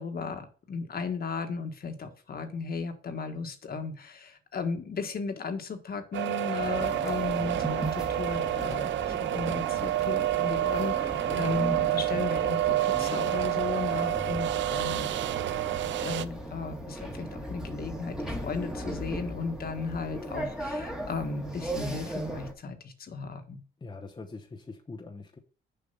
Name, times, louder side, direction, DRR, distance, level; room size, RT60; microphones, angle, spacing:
voice 1, 0.0-15.1 16.0-23.6, left 4 dB, 50° left, 6 dB, 1.4 m, -35 dB
sound 1, 6.1-16.3, right 13 dB, 70° right, 0.5 m, -29 dB
sound 2, 6.6-22.5, right 1 dB, 5° right, 1.6 m, -38 dB
voice 2, 14.0-14.4 23.8-25.4, left 3 dB, 20° left, 2 dB, 0.9 m, -43 dB
6.8 x 5.2 x 5.4 m, 0.40 s
cardioid pair, 90°, 20 cm